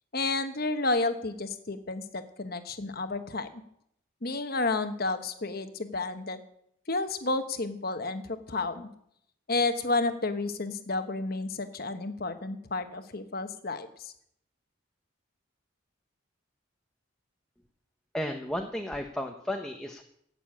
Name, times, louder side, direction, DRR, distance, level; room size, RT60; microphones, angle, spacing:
voice 1, 0.1-3.6 4.2-6.4 6.9-8.9 9.5-14.1, left 3 dB, 45° left, 9 dB, 1.1 m, -31 dB
voice 2, 18.1-20.0, left 1 dB, 5° left, 3 dB, 0.9 m, -33 dB
15.5 x 6.8 x 8.8 m, 0.71 s
head